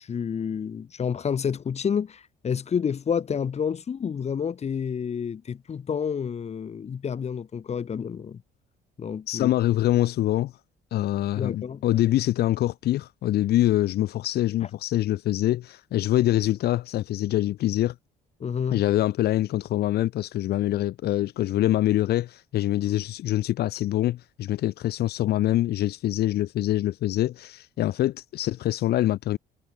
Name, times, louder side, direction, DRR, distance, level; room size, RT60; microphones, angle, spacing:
voice 1, 0.0-8.4 9.0-9.5 11.3-11.8 18.4-18.8, left 7 dB, 40° left, 7.1 m, -29 dB
voice 2, 9.3-10.5 10.9-17.9 18.7-29.4, left 14 dB, 70° left, 4.4 m, -24 dB
cardioid pair, 110°, 17 cm